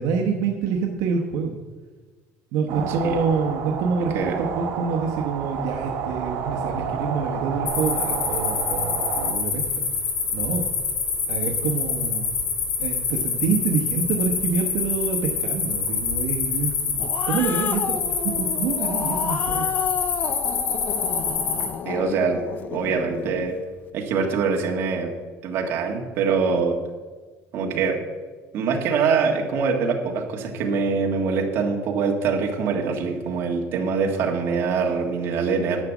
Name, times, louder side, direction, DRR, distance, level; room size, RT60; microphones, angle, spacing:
voice 1, 0.0-1.6 2.5-4.2 4.5-9.8 10.3-10.7 11.3-12.3 12.8-17.0 17.3-19.7, right 5 dB, 65° right, 0 dB, 1.0 m, -26 dB
voice 2, 2.7-3.1 4.1-4.4 21.8-22.4 22.7-23.6 23.9-25.1 25.4-26.8 27.5-28.0 28.5-35.8, right 5 dB, 45° right, 1 dB, 1.7 m, -24 dB
sound 1, 2.7-9.3, right 7 dB, 85° right, 1.7 m, -30 dB
sound 2, 7.7-21.7, left 5 dB, 55° left, 2.3 m, -26 dB
Growling, 16.7-23.5, left 8 dB, 30° left, 0.4 m, -31 dB
10.5 x 6.0 x 8.1 m, 1.4 s
cardioid pair, 180°, 6 cm